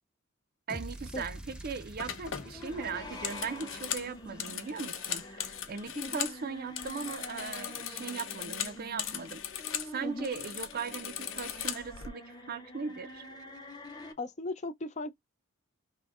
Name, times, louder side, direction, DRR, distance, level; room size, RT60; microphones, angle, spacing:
sound 1, 0.7-4.9, right 1 dB, 5° right, 0.8 m, -47 dB
voice 1, 0.7-9.4 9.8-13.2, right 5 dB, 45° right, 0.5 m, -39 dB
sound 2, 1.4-1.6 2.0-6.4 6.7-9.9 10.2-12.1, left 9 dB, 75° left, 0.9 m, -38 dB
sound 3, 2.4-14.1, left 1 dB, 20° left, 1.3 m, -47 dB
voice 2, 5.9-6.3 10.0-10.3 14.2-15.1, left 2 dB, 35° left, 0.6 m, -37 dB
6.0 x 2.2 x 3.5 m
head